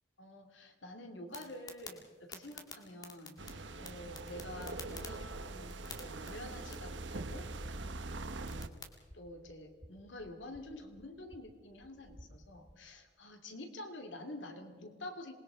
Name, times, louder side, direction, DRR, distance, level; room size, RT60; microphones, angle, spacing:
voice 1, 0.2-5.8 6.0-7.9 8.3-8.8 9.1-15.3, left 1 dB, 85° left, 5 dB, 2.8 m, -48 dB
sound 1, 1.3-8.9, left 3 dB, 20° left, 2.1 m, -53 dB
sound 2, 3.4-8.7, right 2 dB, 75° right, 1.0 m, -43 dB
sound 3, 9.0-12.9, equal, 5° left, 2.0 m, -59 dB
27.0 x 20.5 x 5.1 m, 1.5 s
head